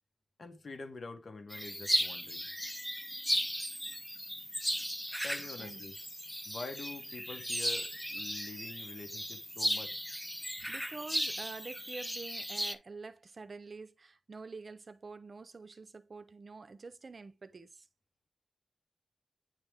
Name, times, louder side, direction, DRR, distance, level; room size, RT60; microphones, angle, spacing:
voice 1, 0.4-2.4 5.2-5.9 6.4-10.0, left 3 dB, 60° left, 1.3 m, -46 dB
sound 1, 1.5-12.7, equal, ahead, 0.6 m, -36 dB
voice 2, 10.7-17.9, right 4 dB, 50° right, 0.7 m, -47 dB
9.7 x 3.4 x 3.4 m
wide cardioid pair, 100°, 0 cm